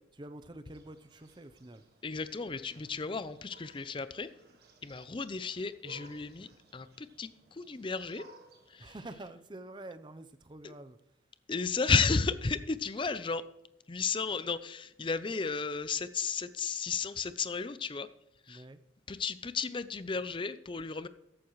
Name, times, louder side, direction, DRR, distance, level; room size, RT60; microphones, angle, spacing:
voice 1, 0.2-1.8 8.8-11.0 18.5-18.8, right 1 dB, 25° right, 10 dB, 0.6 m, -47 dB
sound 1, 0.7-9.0, right 3 dB, 60° right, 1.8 m, -59 dB
voice 2, 2.0-4.3 4.8-8.3 8.7-8.9 10.6-10.7 11.5-13.4 13.9-18.1 18.5-18.6 19.1-21.1, left 4 dB, 25° left, 14 dB, 0.5 m, -33 dB
14.5 x 11.0 x 3.1 m, 0.84 s
head